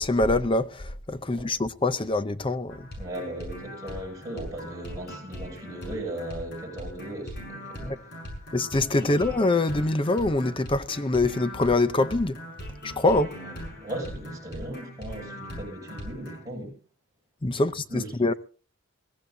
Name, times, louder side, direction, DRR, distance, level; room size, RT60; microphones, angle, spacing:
voice 1, 0.0-2.9 7.8-8.0 8.5-12.4 12.8-13.3 17.4-18.3, left 2 dB, 25° left, 0.6 m, -24 dB
sound 1, 2.7-16.4, equal, 55° left, 7.0 m, -40 dB
voice 2, 3.0-8.0 9.0-9.1 13.3-16.8 17.9-18.1, right 1 dB, 15° right, 7.9 m, -37 dB
22.0 x 15.0 x 2.8 m
head